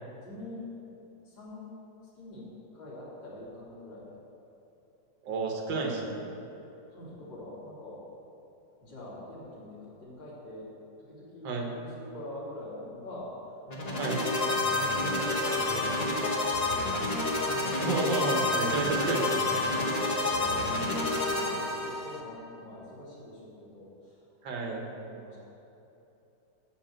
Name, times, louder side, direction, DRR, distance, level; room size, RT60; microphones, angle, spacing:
voice 1, 0.2-0.7 1.2-1.8 2.2-2.5 2.7-4.2 5.9-6.2 6.9-8.0 8.8-17.0 17.3-17.7 19.3-19.5 20.1-25.5, left 1 dB, 80° left, -8 dB, 3.6 m, -45 dB
voice 2, 5.2-6.2 11.4-11.7 14.0-14.2 17.8-19.4 24.4-24.8, right 3 dB, 80° right, 1 dB, 1.9 m, -31 dB
sound 1, 13.7-22.2, left 2 dB, 35° left, 0.6 m, -29 dB
8.8 x 5.5 x 7.8 m, 2.9 s
omnidirectional pair, 2.0 m